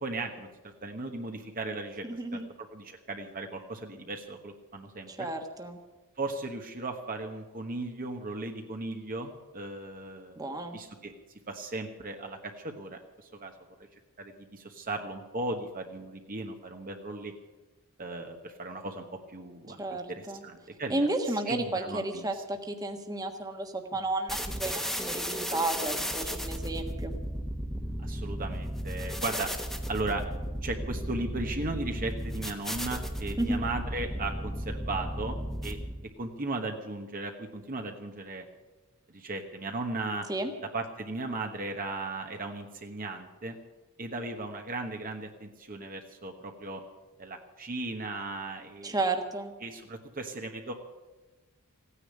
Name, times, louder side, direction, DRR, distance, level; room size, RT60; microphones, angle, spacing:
voice 1, 0.0-2.1 2.3-5.3 6.2-11.1 11.5-13.5 14.2-17.3 18.0-21.1 21.5-22.4 28.0-29.5 29.9-30.2 30.6-35.8 36.2-38.4 39.1-40.3 40.7-43.6 44.0-46.8 47.2-49.0 49.6-50.7, right 2 dB, 40° right, 4 dB, 1.2 m, -37 dB
voice 2, 2.0-2.5 5.1-5.8 10.4-10.8 19.8-20.4 20.9-27.1 33.4-33.6 40.3-40.5 48.8-49.5, right 2 dB, 15° right, 4 dB, 1.4 m, -32 dB
sound 1, 24.3-36.1, equal, ahead, 1.3 m, -34 dB
16.0 x 9.9 x 8.6 m, 1.2 s
head